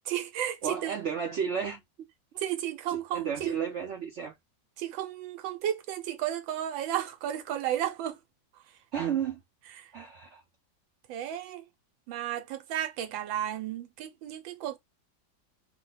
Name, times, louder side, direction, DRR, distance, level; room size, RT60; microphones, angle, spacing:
voice 1, 0.0-1.0 2.4-3.6 4.8-8.2 9.8-9.9 11.1-11.6 12.1-14.8, right 11 dB, 85° right, 1.4 m, -33 dB
voice 2, 0.6-2.1 2.9-4.3 8.9-9.4 9.9-10.4, right 7 dB, 70° right, 0.6 m, -33 dB
3.1 x 2.2 x 3.8 m
omnidirectional pair, 2.1 m